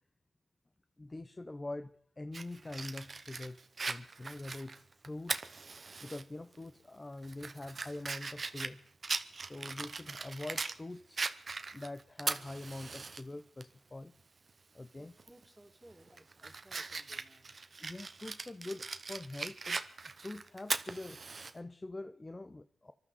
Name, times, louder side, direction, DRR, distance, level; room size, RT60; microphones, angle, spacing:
voice 1, 1.0-3.6 3.9-5.5 6.0-8.8 9.5-11.2 11.7-14.1 14.7-15.2 17.8-19.8 20.1-21.2 21.5-22.9, left 2 dB, 30° left, 10 dB, 0.6 m, -44 dB
Fire, 2.3-6.2 6.6-6.7 7.2-10.8 11.2-13.2 13.6-13.7 15.2-15.4 15.9-21.5, right 4 dB, 50° right, 0.9 m, -40 dB
voice 2, 15.0-17.5, right 1 dB, 10° right, 3 dB, 2.6 m, -60 dB
25.0 x 12.5 x 4.2 m, 0.66 s
cardioid pair, 60°, 0 cm